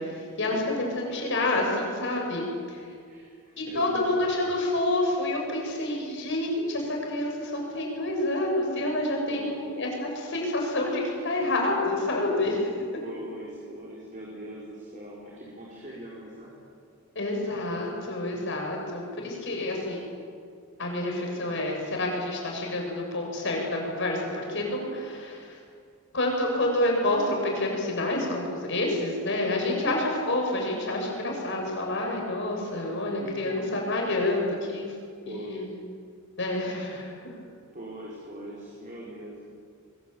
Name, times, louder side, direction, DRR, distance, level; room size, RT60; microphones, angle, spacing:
voice 1, 0.0-2.8 3.6-12.7 17.2-20.0 20.8-22.8 23.1-25.6 26.1-34.9 35.3-35.6 36.4-37.2, left 1 dB, 55° left, 0 dB, 7.1 m, -28 dB
voice 2, 3.1-4.2 9.3-9.7 13.0-16.5 29.5-29.9 33.2-33.7 35.2-35.7 37.7-39.4, right 1 dB, 35° right, -5 dB, 5.0 m, -41 dB
23.5 x 21.5 x 8.9 m, 2.2 s
head